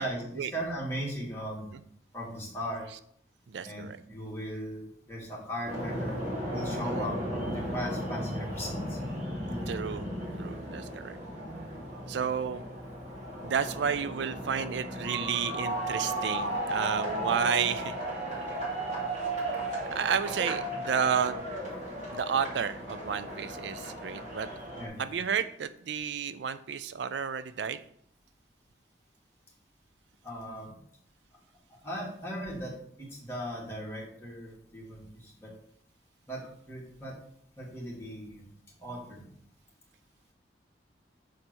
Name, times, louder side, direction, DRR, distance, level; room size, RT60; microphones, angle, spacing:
voice 1, 0.0-1.7 2.1-2.8 3.6-6.1 6.5-9.0 9.5-9.7 24.8-25.0 30.2-30.7 31.7-35.5 36.3-37.2 37.6-38.4 38.8-39.2, equal, 15° left, -4 dB, 2.2 m, -38 dB
voice 2, 3.5-4.0 9.7-10.0 10.4-11.2 12.1-12.6 13.4-18.0 19.9-21.4 22.1-24.5 25.0-27.8, right 7 dB, 75° right, 13 dB, 0.4 m, -31 dB
sound 1, 5.7-24.9, right 1 dB, 45° right, 2.8 m, -35 dB
6.5 x 4.3 x 6.2 m, 0.66 s
head